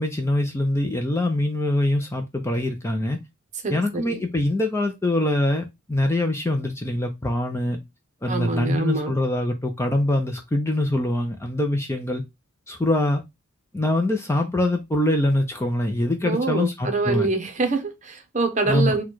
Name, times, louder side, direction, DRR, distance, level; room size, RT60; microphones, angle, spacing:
voice 1, 0.0-3.2 3.7-7.8 8.2-12.2 12.7-13.2 13.7-17.3 18.7-19.0, left 1 dB, 10° left, 0.5 m, -24 dB
voice 2, 3.6-4.2 8.3-9.1 16.2-19.0, right 3 dB, 35° right, 0.8 m, -25 dB
4.2 x 2.3 x 4.5 m
head